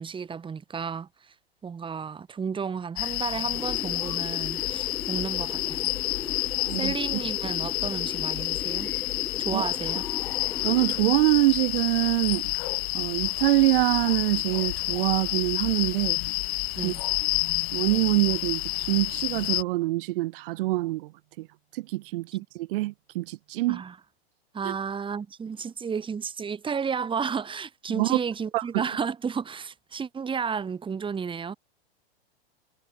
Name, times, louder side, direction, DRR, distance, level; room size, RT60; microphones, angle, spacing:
voice 1, 0.0-1.3 1.6-5.9 6.8-8.9 9.4-10.0 16.8-17.0 23.7-24.0 24.5-31.5, right 6 dB, 15° right, 6.4 m, -32 dB
sound 1, 3.0-19.6, left 24 dB, 50° left, 2.1 m, -29 dB
sound 2, 3.5-11.1, left 4 dB, 10° left, 2.7 m, -39 dB
voice 2, 6.7-7.2 9.5-9.7 10.6-12.5 12.9-16.2 16.8-16.9 17.7-21.1 21.4-21.5 21.7-23.8 24.6-24.7 27.9-28.2 28.5-28.8, right 19 dB, 60° right, 6.8 m, -25 dB
hypercardioid pair, 130°, 32 cm